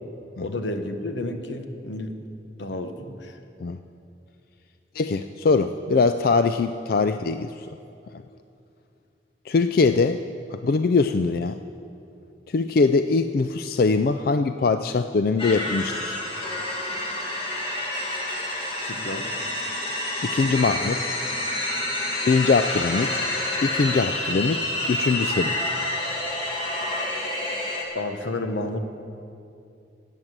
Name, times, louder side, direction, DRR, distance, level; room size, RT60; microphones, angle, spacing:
voice 1, 0.4-2.1 2.6-3.4 18.8-19.4 27.9-28.8, left 2 dB, 85° left, 6 dB, 1.2 m, -31 dB
voice 2, 4.9-7.5 9.5-10.2 10.5-11.6 12.5-16.2 20.2-21.0 22.2-23.2 23.6-25.6, left 4 dB, 55° left, 9 dB, 0.4 m, -22 dB
sound 1, 15.4-27.8, left 1 dB, 30° left, 2.2 m, -28 dB
13.0 x 9.0 x 8.0 m, 2.6 s
head